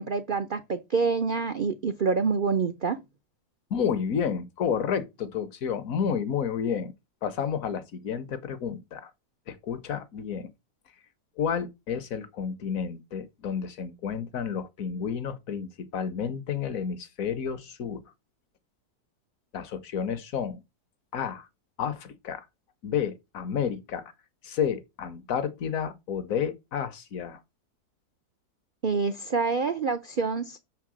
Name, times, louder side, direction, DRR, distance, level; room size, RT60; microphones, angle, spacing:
voice 1, 0.0-3.0 28.8-30.6, right 5 dB, 80° right, 0.4 m, -27 dB
voice 2, 3.7-6.9 7.2-9.1 9.5-10.5 11.4-18.0 19.5-20.6 21.1-21.5 21.8-22.5 22.8-24.1 24.4-27.4, left 7 dB, 60° left, 1.0 m, -31 dB
6.6 x 4.6 x 6.1 m
omnidirectional pair, 1.9 m